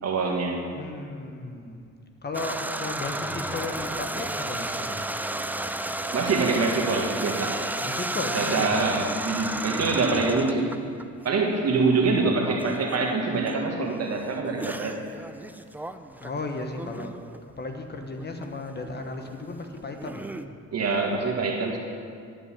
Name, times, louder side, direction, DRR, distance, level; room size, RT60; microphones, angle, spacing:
voice 1, 0.0-0.6 6.1-7.6 8.3-10.7 11.2-15.0 20.7-21.8, right 3 dB, 55° right, 1 dB, 1.7 m, -25 dB
voice 2, 0.7-1.9 2.2-5.0 7.8-8.8 11.9-12.4 16.2-17.2 17.6-20.3, left 2 dB, 35° left, 4 dB, 1.2 m, -35 dB
sound 1, 2.3-11.3 11.8-13.0 13.5-13.6 14.4-17.4 17.9-18.6 18.8-20.5, right 1 dB, 5° right, 0.4 m, -33 dB
11.5 x 5.3 x 8.5 m, 2.3 s
cardioid pair, 90°, 30 cm